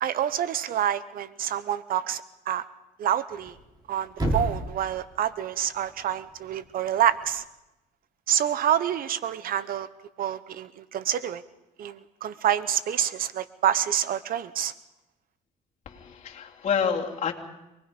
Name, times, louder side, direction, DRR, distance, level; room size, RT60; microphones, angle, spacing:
voice 1, 0.0-2.6 3.0-3.5 3.9-7.4 8.3-9.9 10.2-11.4 11.8-14.7, right 10 dB, 60° right, 15 dB, 0.8 m, -27 dB
Thump thud, 3.3-7.4, right 1 dB, 25° right, 4.9 m, -35 dB
voice 2, 15.8-17.3, left 6 dB, 45° left, -1 dB, 3.0 m, -28 dB
25.5 x 20.0 x 5.3 m, 0.96 s
cardioid pair, 110°, 17 cm